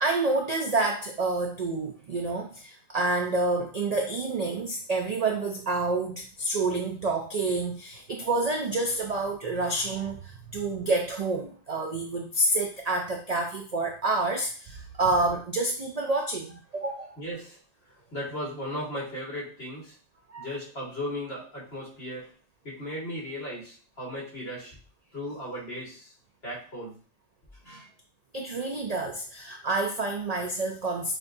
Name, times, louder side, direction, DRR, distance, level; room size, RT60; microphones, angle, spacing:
voice 1, 0.0-17.1 20.3-20.5 28.3-31.2, right 2 dB, 55° right, 2 dB, 0.4 m, -28 dB
voice 2, 17.2-17.6 18.1-19.9 20.4-22.3 22.6-24.8 25.1-26.1 26.4-27.0 27.6-27.9, equal, 55° left, -6 dB, 2.3 m, -36 dB
6.6 x 2.5 x 2.6 m, 0.40 s
omnidirectional pair, 1.3 m